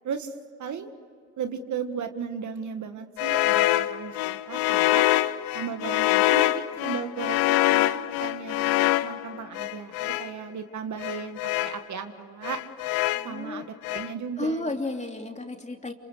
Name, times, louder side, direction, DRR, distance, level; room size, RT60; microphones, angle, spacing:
voice 1, 0.0-0.9 1.4-5.1 5.5-12.6 13.2-14.7, right 7 dB, 55° right, 8 dB, 1.8 m, -36 dB
sound 1, 3.2-10.3 11.0-11.8 12.4-13.4 13.8-14.1, left 16 dB, 85° left, 0.8 m, -25 dB
voice 2, 13.1-13.6 14.4-15.9, left 2 dB, 20° left, 3 dB, 3.1 m, -32 dB
28.0 x 26.0 x 6.7 m, 2.3 s
supercardioid pair, 65°, 34 cm